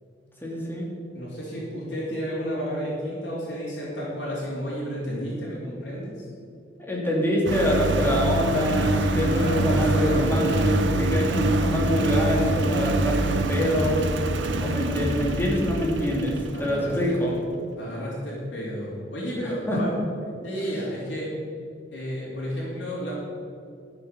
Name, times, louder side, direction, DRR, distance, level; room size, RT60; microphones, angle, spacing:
voice 1, 0.4-0.9 6.8-14.0 14.6-17.4 19.7-19.8, equal, 10° left, -3 dB, 2.4 m, -25 dB
voice 2, 1.1-6.3 9.3-10.7 16.5-17.2 17.8-19.9 20.4-21.3 21.9-23.1, equal, 70° left, -9 dB, 3.3 m, -32 dB
Engine, 7.5-16.9, right 2 dB, 90° right, 0.9 m, -25 dB
12.5 x 7.0 x 6.7 m, 2.5 s
head